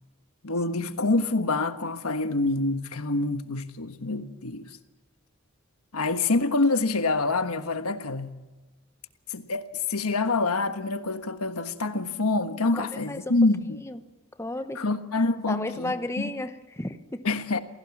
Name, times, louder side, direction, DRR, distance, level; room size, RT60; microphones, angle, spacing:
voice 1, 0.4-4.8 5.9-8.4 9.3-13.8 14.7-16.3 17.2-17.6, left 3 dB, 80° left, 1.4 m, -26 dB
voice 2, 12.7-13.3 13.8-14.0 14.4-14.8 15.5-17.2, left 1 dB, 10° left, 1.0 m, -33 dB
28.0 x 17.0 x 7.3 m
head